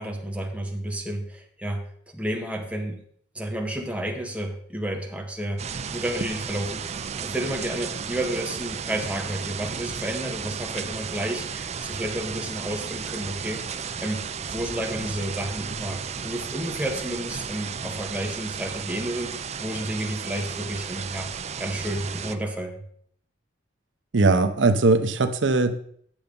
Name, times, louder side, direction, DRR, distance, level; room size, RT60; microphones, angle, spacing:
voice 1, 0.0-1.8 2.1-3.0 3.3-5.6 5.9-13.6 14.0-14.2 14.5-21.3 21.6-22.8, right 1 dB, 5° right, 1 dB, 1.4 m, -31 dB
sound 1, 5.6-22.3, right 6 dB, 35° right, 0.5 m, -34 dB
voice 2, 24.1-25.7, right 3 dB, 85° right, 9 dB, 0.7 m, -20 dB
8.8 x 6.9 x 5.2 m, 0.63 s
head